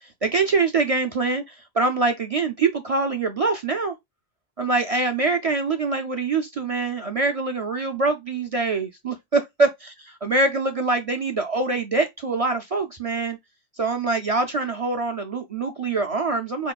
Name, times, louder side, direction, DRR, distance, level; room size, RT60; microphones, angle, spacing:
voice 1, 0.2-3.9 4.6-9.7 10.1-13.4 13.8-16.7, right 3 dB, 45° right, 0.4 m, -24 dB
4.4 x 2.9 x 2.3 m
omnidirectional pair, 1.2 m